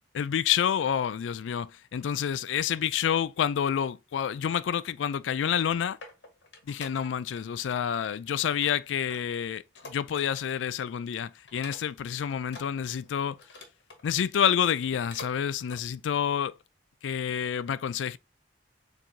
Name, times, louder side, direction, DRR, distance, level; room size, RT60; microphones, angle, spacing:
voice 1, 0.1-6.0 6.7-13.4 14.0-16.6 17.0-18.2, left 8 dB, 85° left, 0.3 m, -28 dB
sound 1, 5.7-7.4 7.7-8.1 8.4-10.6 10.9-11.1 11.5-12.1 12.4-14.0 14.5-15.4 15.6-15.8 16.3-16.4, left 3 dB, 65° left, 1.3 m, -47 dB
4.5 x 3.9 x 2.7 m
head